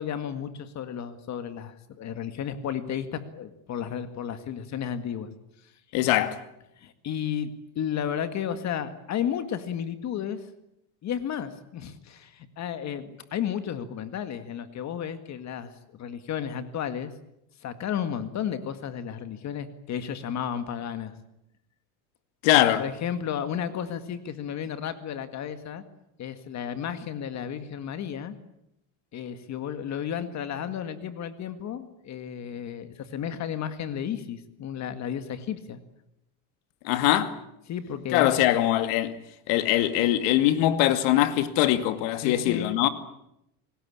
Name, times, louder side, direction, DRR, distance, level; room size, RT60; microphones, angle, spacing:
voice 1, 0.0-5.3 6.8-7.5 7.8-10.5 11.0-17.1 17.6-21.1 22.7-25.8 26.2-28.3 29.1-35.8 37.7-38.4 42.2-42.9, left 8 dB, 35° left, 1.9 m, -33 dB
voice 2, 5.9-6.4 22.4-22.8 36.8-37.4 38.1-39.2 39.5-42.9, left 13 dB, 65° left, 2.3 m, -22 dB
27.0 x 19.5 x 8.7 m
supercardioid pair, 145°, 46 cm